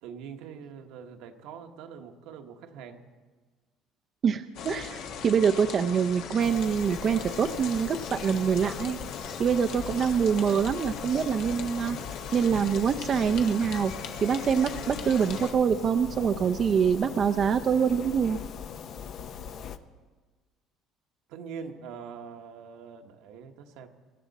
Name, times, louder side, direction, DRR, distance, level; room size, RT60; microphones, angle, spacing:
voice 1, 0.0-3.0 21.3-23.9, right 6 dB, 80° right, 4 dB, 1.3 m, -43 dB
voice 2, 4.2-9.0 9.4-12.0 12.3-13.9 14.2-18.4, right 7 dB, 40° right, 7 dB, 0.5 m, -25 dB
sound 1, 4.5-15.5, left 6 dB, 70° left, 1.5 m, -39 dB
sound 2, 6.4-19.8, left 7 dB, 50° left, 0.7 m, -41 dB
23.0 x 12.5 x 4.1 m, 1.4 s
cardioid pair, 125°, 0 cm